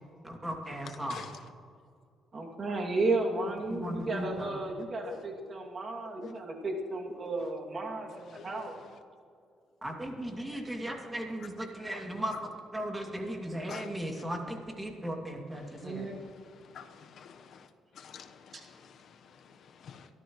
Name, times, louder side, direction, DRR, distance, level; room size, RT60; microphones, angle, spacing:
voice 1, 0.2-1.3 3.7-4.5 9.8-16.1, equal, 15° right, 1 dB, 2.5 m, -37 dB
voice 2, 2.3-8.7 15.8-16.1 18.5-18.6, right 2 dB, 40° right, 0 dB, 2.5 m, -33 dB
voice 3, 16.7-17.7 17.9-20.1, left 7 dB, 65° left, 7 dB, 1.1 m, -48 dB
23.5 x 13.0 x 3.2 m, 2.4 s
cardioid pair, 90°, 0 cm